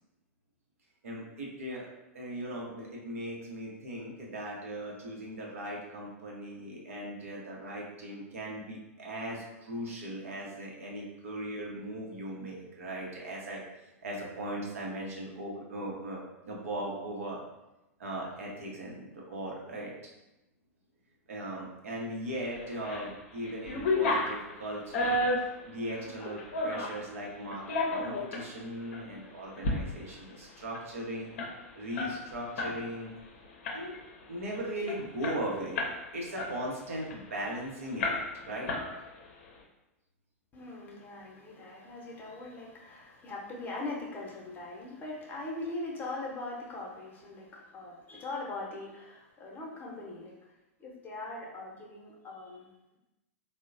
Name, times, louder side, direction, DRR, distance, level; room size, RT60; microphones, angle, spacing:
voice 1, 1.0-1.9 2.1-17.4 18.0-19.9 21.3-31.5 31.7-33.1 33.7-33.9 34.3-35.8 36.1-38.7, right 1 dB, 70° right, -2 dB, 0.8 m, -38 dB
sound 1, 22.6-23.1 23.4-27.0 27.5-28.5 28.9-29.1 29.5-29.8 30.1-30.2 30.4-32.8 33.1-33.3 33.6-34.1 34.5-34.6 34.9-36.0 36.4-37.5 38.0-38.4 38.7-39.3, left 2 dB, 55° left, 0.6 m, -32 dB
voice 2, 40.5-50.4 50.8-53.0, left 2 dB, 25° left, -3 dB, 0.8 m, -41 dB
3.6 x 2.1 x 2.5 m, 0.96 s
figure-of-eight pair, 95°, 8 cm